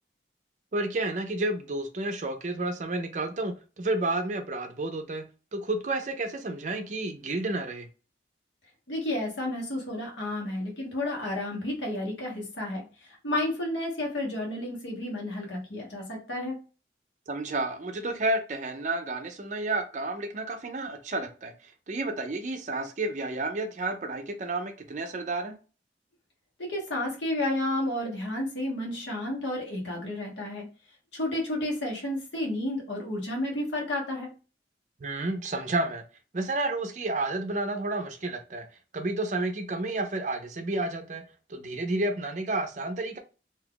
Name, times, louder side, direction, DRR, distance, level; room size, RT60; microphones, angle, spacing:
voice 1, 0.7-5.2 5.5-7.9 17.3-25.5 35.0-36.0 36.3-38.6 38.9-41.2 41.5-43.2, right 2 dB, 45° right, 0.5 m, -31 dB
voice 2, 8.9-16.6 26.6-30.6 31.1-34.3, left 1 dB, 90° left, 1.3 m, -31 dB
2.7 x 2.3 x 3.6 m
head